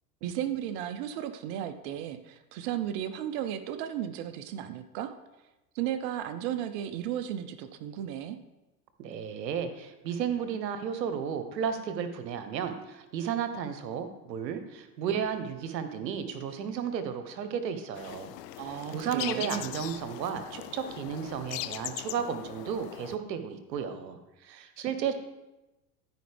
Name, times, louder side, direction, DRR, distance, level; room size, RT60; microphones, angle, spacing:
voice 1, 0.2-5.2 5.7-8.4 18.6-19.7, right 10 dB, 55° right, 9 dB, 0.8 m, -34 dB
voice 2, 9.0-18.3 18.6-24.2 24.4-25.1, right 7 dB, 85° right, 9 dB, 1.1 m, -33 dB
sound 1, 17.9-23.2, left 15 dB, 75° left, 0.6 m, -40 dB
13.5 x 5.1 x 3.4 m, 1.0 s
hypercardioid pair, 95°, 49 cm